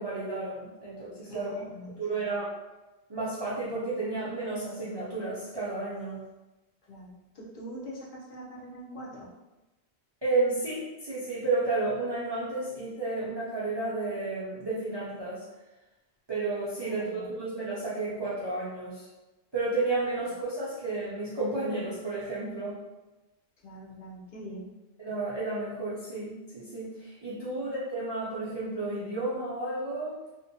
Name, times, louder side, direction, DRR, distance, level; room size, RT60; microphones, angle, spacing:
voice 1, 0.0-1.5 2.0-2.5 3.1-6.2 10.2-15.4 16.3-19.1 19.5-22.8 25.0-30.2, right 3 dB, 45° right, -9 dB, 0.3 m, -32 dB
voice 2, 1.3-2.3 6.9-9.3 16.8-17.3 23.6-24.7 27.6-27.7, equal, 60° left, -5 dB, 0.7 m, -44 dB
2.6 x 2.1 x 2.5 m, 1.1 s
omnidirectional pair, 1.1 m